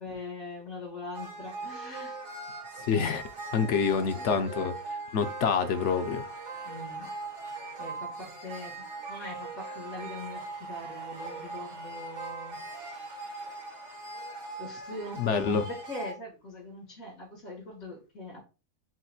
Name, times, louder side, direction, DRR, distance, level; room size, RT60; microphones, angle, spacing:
voice 1, 0.0-2.2 3.8-4.3 6.6-7.1 7.8-13.1 14.6-18.4, left 2 dB, 85° left, 2.4 m, -42 dB
sound 1, 1.1-16.1, right 3 dB, 60° right, 1.4 m, -40 dB
voice 2, 2.9-3.2 3.5-4.7 5.1-6.2 15.2-15.6, left 6 dB, 65° left, 0.8 m, -26 dB
7.8 x 2.9 x 2.3 m
omnidirectional pair, 1.5 m